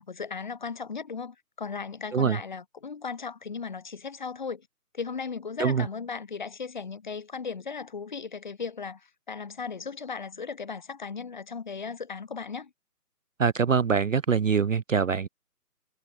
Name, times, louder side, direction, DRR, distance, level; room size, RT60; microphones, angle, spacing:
voice 1, 0.0-4.7 4.9-12.7, left 5 dB, 30° left, 1.8 m, -36 dB
voice 2, 13.4-15.3, right 6 dB, 55° right, 0.5 m, -24 dB
hypercardioid pair, 170°, 47 cm